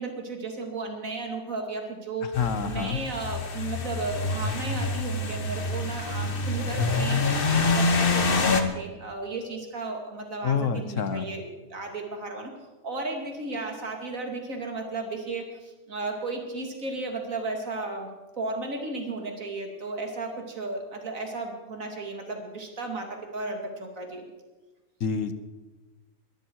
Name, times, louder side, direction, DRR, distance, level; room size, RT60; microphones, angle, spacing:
voice 1, 0.0-11.4 11.7-12.5 12.8-18.1 18.4-24.2, right 3 dB, 65° right, 3 dB, 2.9 m, -34 dB
voice 2, 2.2-3.0 10.4-11.3 25.0-25.3, left 6 dB, 60° left, 11 dB, 1.4 m, -27 dB
sound 1, 2.3-8.6, left 3 dB, 40° left, 1.3 m, -26 dB
22.0 x 13.5 x 4.7 m, 1.2 s
omnidirectional pair, 1.5 m